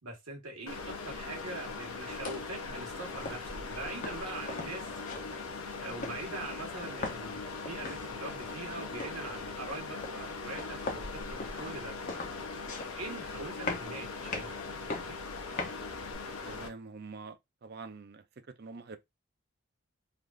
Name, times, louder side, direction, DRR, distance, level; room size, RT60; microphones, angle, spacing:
voice 1, 0.0-4.9 5.8-12.0 12.9-14.6 14.8-15.2, right 2 dB, 90° right, 1.4 m, -43 dB
sound 1, 0.7-16.7, left 4 dB, 85° left, 0.8 m, -40 dB
sound 2, 2.1-16.1, left 3 dB, 40° left, 0.7 m, -43 dB
voice 2, 16.4-18.2 18.6-19.0, right 4 dB, 50° right, 0.4 m, -45 dB
3.3 x 2.5 x 2.4 m
head